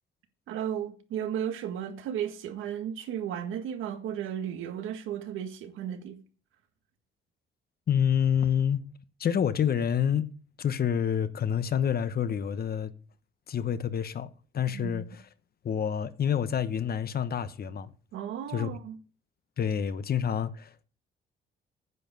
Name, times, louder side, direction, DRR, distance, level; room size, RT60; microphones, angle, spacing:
voice 1, 0.5-6.2 14.7-15.0 18.1-19.0, right 9 dB, 90° right, 1.8 m, -34 dB
voice 2, 7.9-8.8 9.2-10.3 10.6-12.9 13.5-15.3 15.6-17.9 18.5-18.7 19.6-20.8, left 8 dB, 50° left, 1.0 m, -28 dB
9.8 x 7.4 x 6.9 m
cardioid pair, 90°, 20 cm